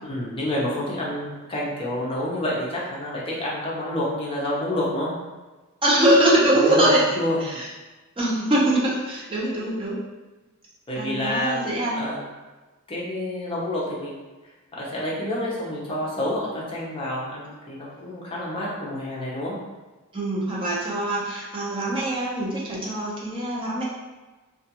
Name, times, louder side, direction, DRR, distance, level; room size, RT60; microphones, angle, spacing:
voice 1, 0.0-5.1 6.5-6.9 7.2-7.4 10.9-11.6 11.9-12.2 12.9-14.1 14.8-19.6, left 1 dB, 25° left, -6 dB, 0.6 m, -28 dB
voice 2, 5.8-7.7 8.2-10.0 11.0-12.0 20.1-23.8, right 1 dB, 25° right, -6 dB, 0.6 m, -23 dB
2.4 x 2.2 x 2.8 m, 1.2 s
head